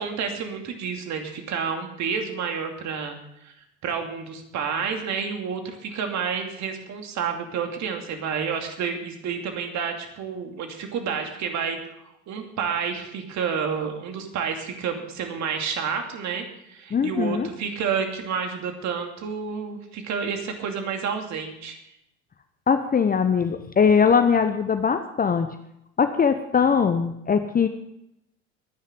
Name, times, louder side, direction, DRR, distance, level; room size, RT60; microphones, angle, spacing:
voice 1, 0.0-3.5 3.8-11.8 12.3-21.8, right 6 dB, 50° right, 4 dB, 2.7 m, -30 dB
voice 2, 16.9-17.5 22.7-25.5 26.0-27.7, left 6 dB, 25° left, 9 dB, 0.9 m, -21 dB
22.0 x 10.0 x 3.8 m, 0.80 s
hypercardioid pair, 65°, 35 cm